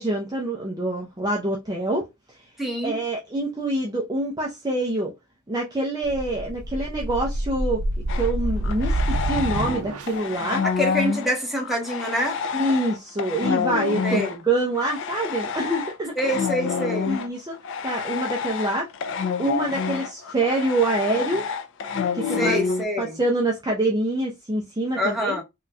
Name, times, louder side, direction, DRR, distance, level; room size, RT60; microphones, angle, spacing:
voice 1, 0.0-2.1 2.8-5.1 5.5-7.8 8.1-10.6 12.5-16.1 17.1-17.6 17.8-18.9 19.4-21.4 22.1-22.6 23.0-25.4, right 2 dB, 20° right, 0.6 m, -25 dB
voice 2, 2.6-3.0 10.6-12.4 14.0-14.4 16.2-17.1 22.4-23.2 25.0-25.4, equal, ahead, 1.2 m, -26 dB
sound 1, 6.0-10.4, right 1 dB, 75° right, 0.5 m, -27 dB
sound 2, 8.1-9.8 10.1-22.8, left 6 dB, 60° left, 0.4 m, -28 dB
3.6 x 2.8 x 2.3 m
head